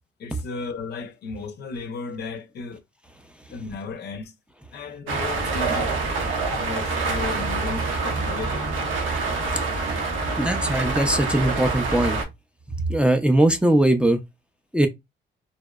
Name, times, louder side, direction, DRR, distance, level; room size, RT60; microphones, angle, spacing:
voice 1, 0.2-2.8 3.5-4.3 4.7-5.9 6.5-8.6, left 4 dB, 55° left, 0.5 m, -34 dB
sound 1, 5.1-12.2, right 3 dB, 80° right, 0.8 m, -26 dB
voice 2, 10.4-12.2 12.7-14.2 14.7-14.9, right 1 dB, 5° right, 0.4 m, -20 dB
2.6 x 2.0 x 2.3 m
cardioid pair, 90°, 20 cm